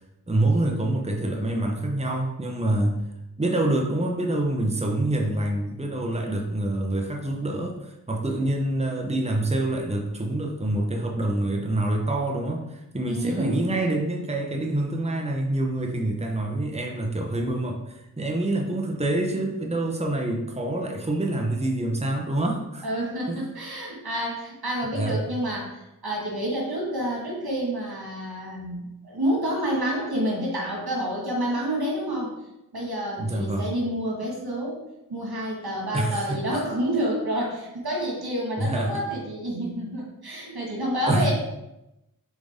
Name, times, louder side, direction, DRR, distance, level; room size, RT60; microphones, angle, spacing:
voice 1, 0.3-3.0 3.4-22.9 23.3-23.4 24.9-25.2 33.2-33.7 35.9-36.6 38.6-39.0 41.1-41.3, right 1 dB, 15° right, 1 dB, 0.9 m, -26 dB
voice 2, 13.1-13.7 22.8-32.3 32.7-34.8 35.1-41.3, equal, 85° right, -3 dB, 1.8 m, -29 dB
7.2 x 3.9 x 3.6 m, 0.91 s
wide cardioid pair, 50°, 37 cm